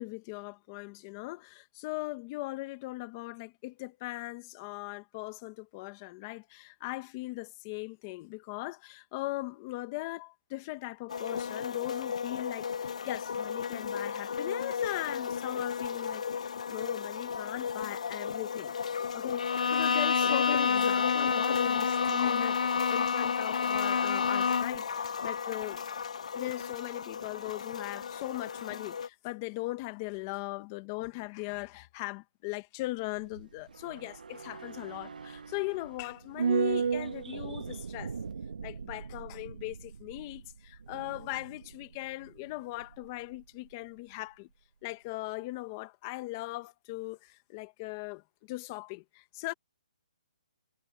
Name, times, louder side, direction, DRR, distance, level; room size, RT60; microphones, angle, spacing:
voice 1, 0.0-18.7 19.1-25.8 26.3-38.1 38.6-44.5 44.8-49.5, left 21 dB, 20° left, 1.1 m, -39 dB
sound 1, 11.1-29.1, left 6 dB, 55° left, 1.4 m, -35 dB
Bowed string instrument, 19.4-24.8, left 6 dB, 75° left, 0.8 m, -28 dB
sound 2, 33.0-43.4 43.7-43.8, right 6 dB, 90° right, 1.3 m, -37 dB
hypercardioid pair, 175°, 4 cm